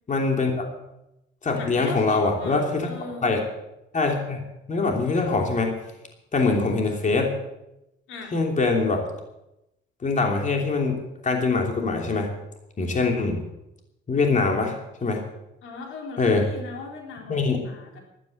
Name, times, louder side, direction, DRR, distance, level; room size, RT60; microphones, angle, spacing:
voice 1, 0.1-0.7 1.4-2.9 3.2-3.4 3.9-5.7 6.3-7.3 8.3-9.0 10.0-12.4 12.8-13.4 14.1-14.7 15.0-15.2 16.2-16.5 17.3-17.6, left 3 dB, 40° left, 2 dB, 3.0 m, -23 dB
voice 2, 1.6-3.4 8.1-8.4 15.6-18.0, left 4 dB, 85° left, 1 dB, 3.9 m, -38 dB
12.5 x 12.5 x 7.9 m, 0.89 s
cardioid pair, 90°, 20 cm